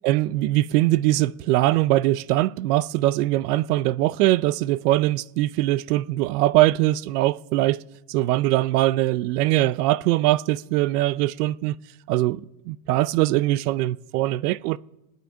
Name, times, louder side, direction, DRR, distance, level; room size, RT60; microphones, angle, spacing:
voice 1, 0.0-7.8 8.1-11.8 12.1-14.8, right 16 dB, 80° right, 0.6 m, -22 dB
26.5 x 9.2 x 4.5 m
supercardioid pair, 130°, 46 cm